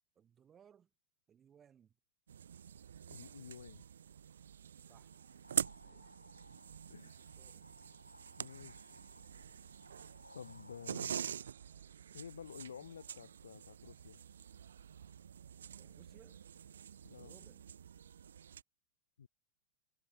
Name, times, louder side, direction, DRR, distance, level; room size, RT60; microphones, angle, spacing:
voice 1, 0.1-0.9 1.3-1.9 4.8-5.1 5.8-6.1 7.4-7.7 15.8-16.4 17.2-17.7, right 8 dB, 25° right, 1.2 m, -64 dB
sound 1, 2.3-18.6, right 8 dB, 65° right, 0.3 m, -46 dB
voice 2, 3.1-3.8 5.9-6.2 6.9-7.3 8.4-9.0 10.3-11.3 12.1-14.2 17.0-17.4 19.2-19.3, left 7 dB, 70° left, 0.5 m, -51 dB
sound 2, 5.1-11.0, left 2 dB, 85° left, 0.8 m, -62 dB
figure-of-eight pair, 90°, 0 cm